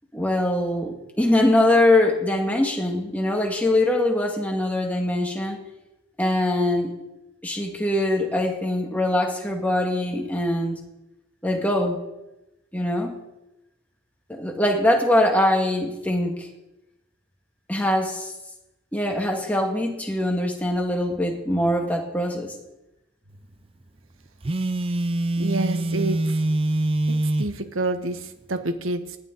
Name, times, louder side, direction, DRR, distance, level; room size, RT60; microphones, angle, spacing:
voice 1, 0.1-5.6 6.2-6.9 7.4-10.8 11.4-12.0 12.7-13.2 14.3-16.5 17.7-18.3 18.9-22.5, left 1 dB, 5° left, 1 dB, 2.0 m, -22 dB
Telephone, 24.4-27.6, right 1 dB, 25° right, 0.4 m, -24 dB
voice 2, 25.4-26.2 27.4-29.2, right 2 dB, 70° right, 8 dB, 1.4 m, -27 dB
19.0 x 11.5 x 4.1 m, 0.94 s
head